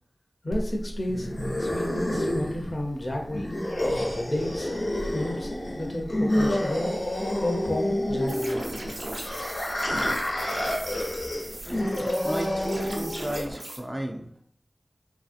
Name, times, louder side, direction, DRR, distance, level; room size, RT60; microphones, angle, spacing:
voice 1, 0.4-1.3 1.6-3.5 4.3-4.7 5.0-6.9 7.4-8.5, left 1 dB, 45° left, 1 dB, 0.6 m, -31 dB
sound 1, 0.5-13.5, left 1 dB, 75° left, 0.9 m, -28 dB
sound 2, 8.3-13.8, right 1 dB, 60° right, 0.6 m, -38 dB
voice 2, 12.2-14.3, right 1 dB, 20° right, 2 dB, 0.4 m, -34 dB
3.1 x 2.6 x 2.4 m, 0.70 s
wide cardioid pair, 55°, 0 cm